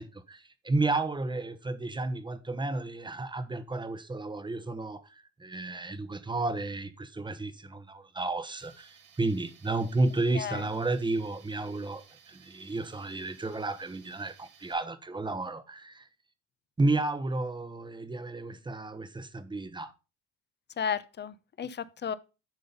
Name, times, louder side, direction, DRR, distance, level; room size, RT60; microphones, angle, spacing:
voice 1, 0.0-16.1 16.8-19.9, right 2 dB, 15° right, 1.0 m, -32 dB
Tools, 8.6-14.7, right 7 dB, 85° right, 2.6 m, -58 dB
voice 2, 20.8-22.1, left 7 dB, 30° left, 0.8 m, -33 dB
10.5 x 3.9 x 5.4 m
supercardioid pair, 80°, 34 cm